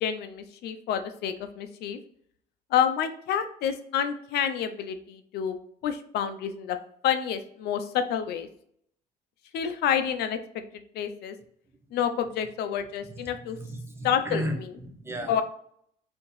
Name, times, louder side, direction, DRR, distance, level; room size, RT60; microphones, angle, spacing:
voice 1, 0.0-2.0 2.7-5.6 5.8-6.8 7.0-8.5 9.5-10.4 10.9-11.4 11.9-13.6 14.0-14.7 15.3-15.4, left 8 dB, 75° left, 9 dB, 0.5 m, -28 dB
voice 2, 13.5-15.4, right 1 dB, 15° right, 3 dB, 0.7 m, -34 dB
4.2 x 2.8 x 3.1 m, 0.66 s
cardioid pair, 110°, 17 cm